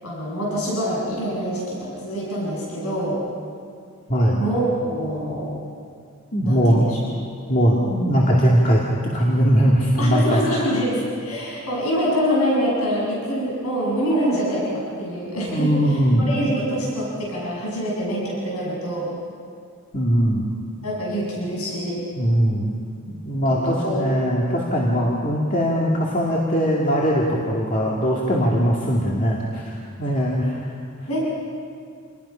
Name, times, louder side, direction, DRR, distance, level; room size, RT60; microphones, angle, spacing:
voice 1, 0.0-3.2 4.4-5.6 6.4-7.0 10.0-19.1 20.8-22.0 23.5-24.0 31.1-31.2, equal, 80° left, -4 dB, 6.8 m, -25 dB
voice 2, 4.1-4.4 6.3-6.9 7.5-8.8 9.1-10.4 15.5-16.2 19.9-20.4 22.2-22.8 23.2-30.6, equal, 35° left, -4 dB, 2.3 m, -20 dB
28.0 x 20.5 x 5.7 m, 2.3 s
head